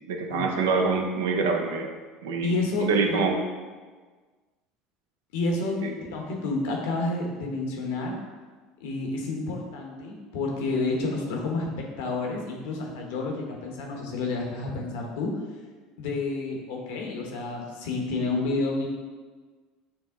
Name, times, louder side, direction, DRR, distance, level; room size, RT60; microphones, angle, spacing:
voice 1, 0.1-2.0 2.2-2.5 2.8-3.4 5.8-5.9, right 4 dB, 80° right, 3 dB, 0.5 m, -25 dB
voice 2, 2.4-3.2 5.3-8.1 8.8-15.3 16.0-18.9, left 3 dB, 75° left, 0 dB, 0.9 m, -30 dB
6.1 x 2.1 x 3.5 m, 1.4 s
hypercardioid pair, 85°, 0 cm